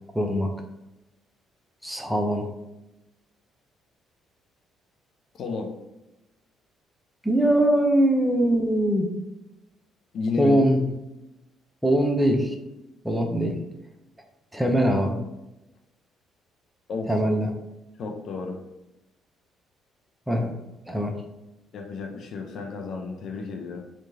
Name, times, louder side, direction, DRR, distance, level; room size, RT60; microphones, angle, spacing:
voice 1, 0.1-0.5 1.8-2.4 7.2-9.1 10.4-10.9 11.8-12.5 13.0-13.5 14.5-15.2 17.1-17.5 20.3-20.5 20.9-21.1, equal, 5° right, 3 dB, 0.5 m, -22 dB
voice 2, 5.3-5.7 10.1-10.6 14.6-14.8 16.9-17.1 18.0-18.6 21.7-23.8, left 4 dB, 60° left, 2 dB, 0.4 m, -32 dB
2.9 x 2.2 x 2.6 m, 0.93 s
hypercardioid pair, 50°, 0 cm